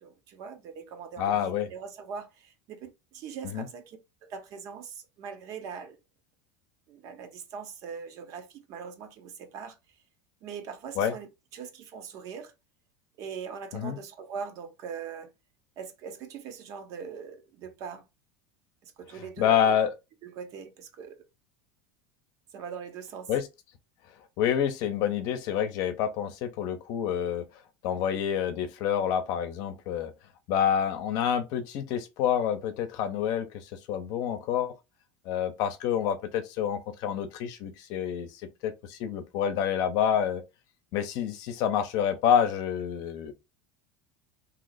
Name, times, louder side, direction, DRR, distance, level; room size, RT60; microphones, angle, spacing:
voice 1, 0.0-6.0 6.9-9.8 10.4-12.5 13.2-15.3 15.8-18.1 18.8-19.8 20.2-21.2 22.5-23.3, right 6 dB, 50° right, 0.7 m, -41 dB
voice 2, 1.2-1.7 3.4-3.7 11.0-11.1 13.7-14.0 19.4-19.9 23.3-23.5 24.4-27.4 27.8-30.1 30.5-34.8 35.2-40.4 40.9-43.3, left 9 dB, 60° left, 0.7 m, -28 dB
2.8 x 2.0 x 3.9 m
supercardioid pair, 125°, 7 cm